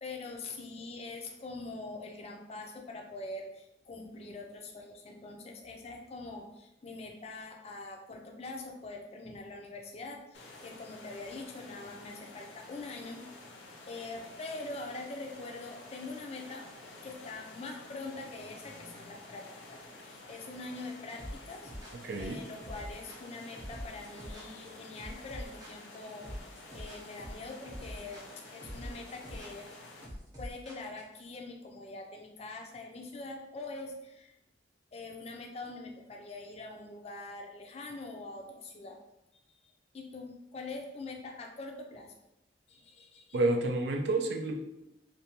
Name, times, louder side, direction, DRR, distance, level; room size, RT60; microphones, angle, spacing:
voice 1, 0.0-13.2 13.6-16.7 17.0-21.7 22.2-29.7 30.4-34.3 34.9-39.0 39.6-42.1 42.7-43.4, left 3 dB, 35° left, 2 dB, 0.4 m, -44 dB
sound 1, 10.3-30.1, left 2 dB, 85° left, 0.5 m, -51 dB
sound 2, 21.2-31.2, equal, 20° right, 0.6 m, -44 dB
voice 2, 22.0-22.4 43.3-44.6, right 2 dB, 65° right, 3 dB, 0.4 m, -29 dB
2.6 x 2.2 x 2.8 m, 0.88 s
head